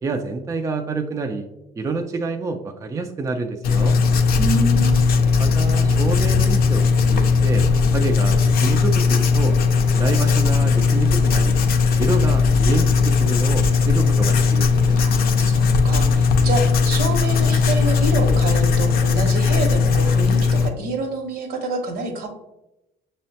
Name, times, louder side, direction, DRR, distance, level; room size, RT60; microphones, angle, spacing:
voice 1, 0.0-1.5 1.8-4.0 5.4-7.7 7.9-9.6 9.9-11.6 12.0-15.0, right 3 dB, 20° right, 4 dB, 0.3 m, -28 dB
Writing, 3.6-20.7, left 5 dB, 60° left, 0.5 m, -18 dB
voice 2, 4.4-5.2 14.9-22.3, right 2 dB, 65° right, 4 dB, 0.9 m, -27 dB
6.1 x 2.1 x 2.7 m, 0.91 s
cardioid pair, 110°, 17 cm